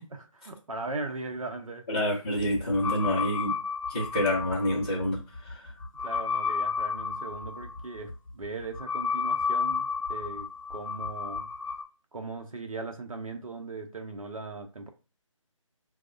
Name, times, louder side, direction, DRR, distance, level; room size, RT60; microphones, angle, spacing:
voice 1, 0.1-1.9 6.0-11.5 12.1-14.9, right 3 dB, 85° right, 0.6 m, -38 dB
voice 2, 1.9-3.5 3.9-5.7, left 1 dB, 15° left, 0.4 m, -28 dB
sound 1, 2.4-11.8, left 5 dB, 75° left, 0.5 m, -32 dB
4.6 x 2.0 x 2.4 m
figure-of-eight pair, 155°, 17 cm